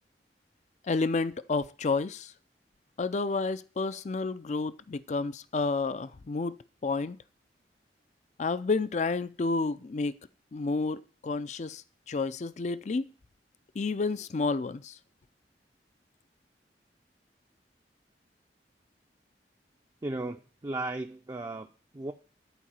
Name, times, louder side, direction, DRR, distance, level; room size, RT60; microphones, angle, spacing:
voice 1, 0.9-2.3 3.0-6.6 6.8-7.2 8.4-10.2 10.5-11.8 12.1-13.1 13.8-15.0, left 3 dB, 40° left, 0.4 m, -30 dB
voice 2, 20.0-21.7 21.9-22.1, right 2 dB, 20° right, 0.5 m, -35 dB
11.0 x 4.8 x 7.4 m
head